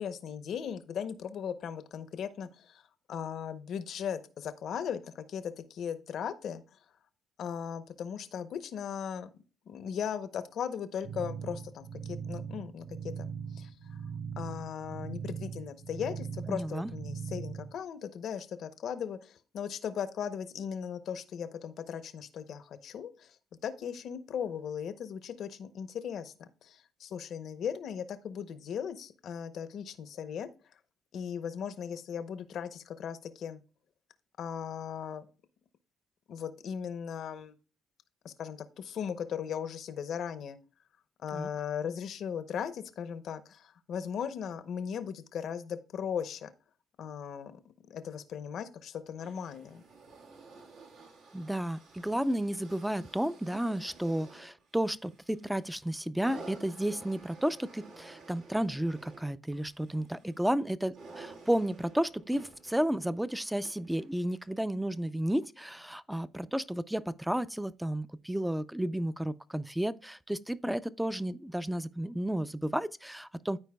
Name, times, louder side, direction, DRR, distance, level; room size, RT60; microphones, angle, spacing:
voice 1, 0.0-2.8 3.1-6.6 7.4-9.3 9.7-13.3 13.5-13.7 14.4-23.4 23.6-30.5 31.1-33.6 34.4-35.2 36.3-37.5 38.2-40.6 41.2-46.5 47.0-47.6 47.9-49.8, left 8 dB, 65° left, 0.7 m, -38 dB
sound 1, 11.0-17.8, right 6 dB, 55° right, 2.9 m, -40 dB
voice 2, 16.5-16.9 41.3-41.5 51.3-73.6, right 1 dB, 5° right, 0.4 m, -32 dB
sound 2, 49.1-64.6 65.4-65.5, right 3 dB, 80° right, 1.6 m, -53 dB
13.0 x 4.5 x 2.2 m
cardioid pair, 80°, 0 cm